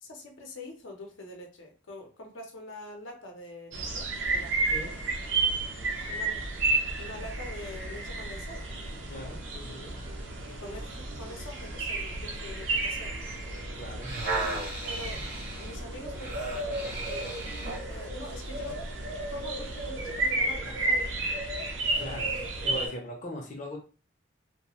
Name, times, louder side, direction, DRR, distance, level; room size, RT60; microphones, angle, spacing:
voice 1, 0.0-5.0 6.1-6.4 7.0-8.7 10.5-13.2 14.8-17.4 17.9-18.8 19.3-21.1 22.8-23.0, left 1 dB, 90° left, 1 dB, 0.7 m, -45 dB
sound 1, 3.7-22.9, right 2 dB, 90° right, 0.6 m, -32 dB
voice 2, 9.1-10.0 13.8-14.1 21.9-23.8, left 1 dB, 40° left, 0 dB, 0.6 m, -40 dB
sound 2, 9.1-18.0, right 1 dB, 30° right, 0.4 m, -53 dB
sound 3, 14.0-17.9 18.5-18.6, right 3 dB, 55° right, 0.9 m, -36 dB
2.4 x 2.2 x 2.9 m, 0.35 s
head